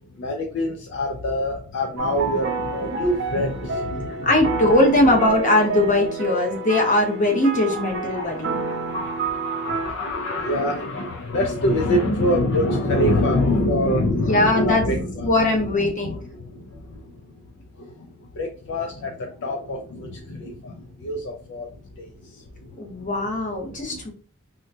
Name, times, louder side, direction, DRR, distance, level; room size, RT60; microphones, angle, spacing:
voice 1, 0.1-4.5 7.7-17.1 17.8-18.1 18.3-21.7 22.0-23.1 23.7-24.0, left 1 dB, 55° left, 2 dB, 0.4 m, -26 dB
sound 1, 2.0-9.9, right 4 dB, 55° right, 0.6 m, -29 dB
voice 2, 4.2-8.6 14.1-14.8 15.2-16.2 22.8-24.1, left 1 dB, 35° left, 0 dB, 0.9 m, -20 dB
3.7 x 2.3 x 2.7 m, 0.41 s
head